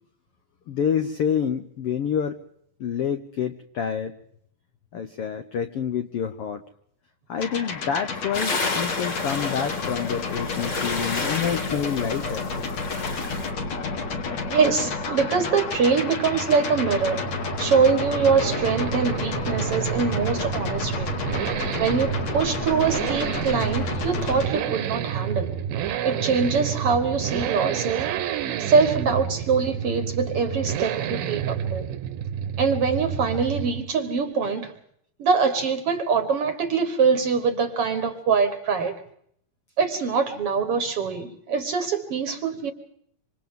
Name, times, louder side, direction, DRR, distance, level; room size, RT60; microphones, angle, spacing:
voice 1, 0.7-2.4 2.8-4.1 4.9-6.6 7.3-12.4, left 7 dB, 80° left, 8 dB, 1.3 m, -27 dB
sound 1, 7.4-24.5, left 4 dB, 55° left, 3.3 m, -30 dB
sound 2, 8.3-13.5, left 3 dB, 35° left, 3.2 m, -31 dB
voice 2, 14.4-17.3 17.6-21.2 21.8-25.5 26.0-28.1 28.6-31.9 32.6-34.7 35.2-39.0 39.8-42.7, right 5 dB, 55° right, 9 dB, 1.8 m, -23 dB
Accelerating revving vroom, 15.8-33.9 34.2-34.3, right 9 dB, 75° right, 2.7 m, -30 dB
27.0 x 26.0 x 3.7 m, 0.68 s
omnidirectional pair, 4.0 m